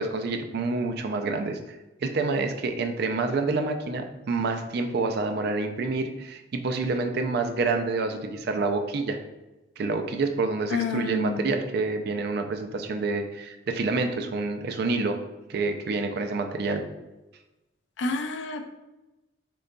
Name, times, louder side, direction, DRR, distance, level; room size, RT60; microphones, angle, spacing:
voice 1, 0.0-1.6 2.0-9.2 9.8-15.2 15.5-16.8, right 3 dB, 60° right, 6 dB, 0.4 m, -28 dB
voice 2, 10.7-11.4 18.0-18.6, left 3 dB, 85° left, 6 dB, 0.4 m, -28 dB
3.8 x 3.7 x 2.2 m, 1.0 s
head